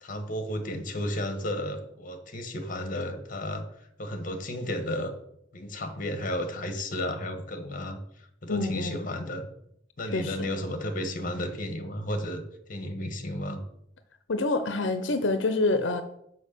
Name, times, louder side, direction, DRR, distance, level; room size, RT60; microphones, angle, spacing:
voice 1, 0.0-5.1 5.5-9.5 10.0-13.6, left 1 dB, 45° left, 7 dB, 1.3 m, -33 dB
voice 2, 8.5-9.1 10.1-10.5 14.3-16.0, left 2 dB, 90° left, 9 dB, 0.7 m, -27 dB
6.5 x 5.6 x 6.8 m, 0.74 s
head